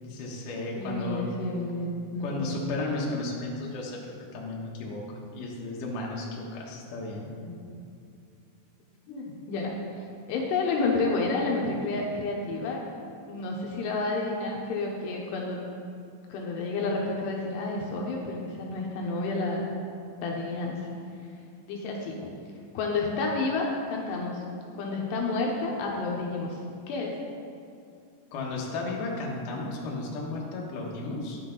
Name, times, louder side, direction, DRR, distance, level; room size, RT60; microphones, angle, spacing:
voice 1, 0.0-1.3 2.2-4.0 4.3-7.3 28.3-31.4, left 2 dB, 65° left, -3 dB, 2.4 m, -34 dB
voice 2, 0.8-2.4 7.3-7.6 9.1-9.8 10.3-12.8 13.3-15.6 16.3-19.7 20.2-20.8 21.7-22.2 22.7-24.4 24.7-26.6 26.9-27.2, left 3 dB, 80° left, -1 dB, 2.9 m, -30 dB
9.6 x 8.1 x 3.9 m, 2.4 s
omnidirectional pair, 4.9 m